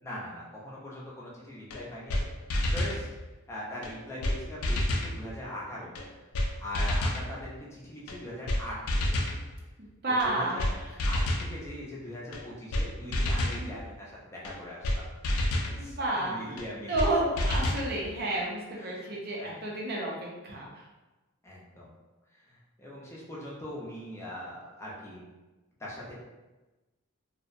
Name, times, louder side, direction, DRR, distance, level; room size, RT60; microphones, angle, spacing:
voice 1, 0.0-2.3 2.7-3.1 3.5-6.0 6.6-8.8 9.1-9.2 10.1-10.8 11.0-15.4 15.8-17.2 18.8-19.1 19.4-19.5 21.4-21.9 22.5-25.2 25.8-26.1, left 1 dB, 10° left, -6 dB, 0.5 m, -41 dB
sound 1, 1.7-1.8 2.1-2.2 2.5-3.0 3.8-3.9 4.2-4.4 4.6-5.1 6.0-6.1 6.3-6.5 6.7-7.2 8.1-8.2 8.5-8.6 8.9-9.4 10.2-10.3 10.6-10.7 11.0-11.5 12.3-12.4 12.7-12.9 13.1-13.6 14.5-14.6 14.8-15.0 15.2-15.7 16.6-16.7 17.0-17.1 17.4-17.9, left 1 dB, 80° left, 0.4 m, -28 dB
voice 2, 9.8-10.9 13.4-13.8 15.8-16.4 16.9-20.7, right 2 dB, 45° right, -3 dB, 0.5 m, -31 dB
2.6 x 2.0 x 2.5 m, 1.1 s
head